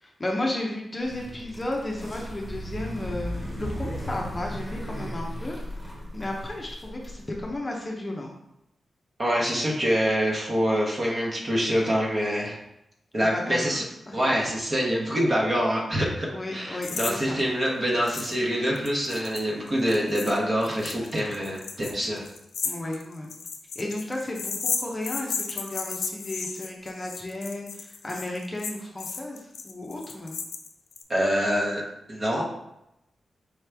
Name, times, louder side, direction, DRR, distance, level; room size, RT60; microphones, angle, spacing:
voice 1, 0.0-5.6 5.8-8.3 13.2-13.8 14.1-14.5 16.3-17.4 22.6-23.3 23.8-30.4, left 1 dB, 20° left, -1 dB, 0.6 m, -34 dB
sound 1, 1.0-7.5, equal, 15° right, 1.5 m, -36 dB
voice 2, 9.2-12.6 13.1-13.8 14.1-22.2 31.1-31.8 32.1-32.4, equal, 35° right, -2 dB, 1.0 m, -25 dB
sound 2, 16.8-17.1 17.4-17.5 18.1-18.4 18.7-31.0, left 5 dB, 85° left, 0.5 m, -34 dB
4.9 x 3.0 x 3.4 m, 0.85 s
wide cardioid pair, 145°, 0 cm